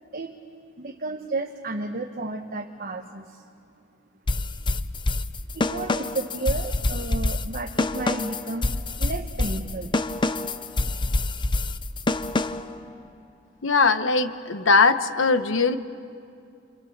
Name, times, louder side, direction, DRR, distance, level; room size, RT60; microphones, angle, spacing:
voice 1, 0.8-3.4 5.5-9.9 12.7-12.9, right 3 dB, 45° right, 3 dB, 1.2 m, -32 dB
sound 1, 4.3-12.8, left 2 dB, 25° left, 0.6 m, -26 dB
voice 2, 13.6-15.8, left 4 dB, 70° left, 10 dB, 1.1 m, -20 dB
29.5 x 25.5 x 7.3 m, 2.4 s
head